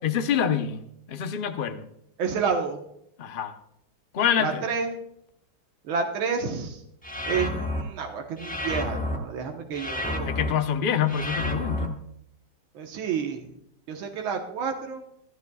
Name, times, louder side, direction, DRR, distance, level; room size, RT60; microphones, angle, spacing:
voice 1, 0.0-0.8 1.1-1.9 3.2-3.5 4.1-4.6 10.3-12.0, left 8 dB, 50° left, 8 dB, 0.6 m, -26 dB
voice 2, 2.2-2.8 4.4-4.9 5.8-6.8 7.3-10.3 12.8-13.5 13.9-15.0, right 6 dB, 85° right, 3 dB, 2.0 m, -29 dB
sound 1, 7.0-7.8 8.4-9.2 9.7-10.5 11.1-11.9, left 1 dB, 5° left, 0.8 m, -30 dB
24.5 x 12.5 x 2.3 m, 0.76 s
omnidirectional pair, 2.2 m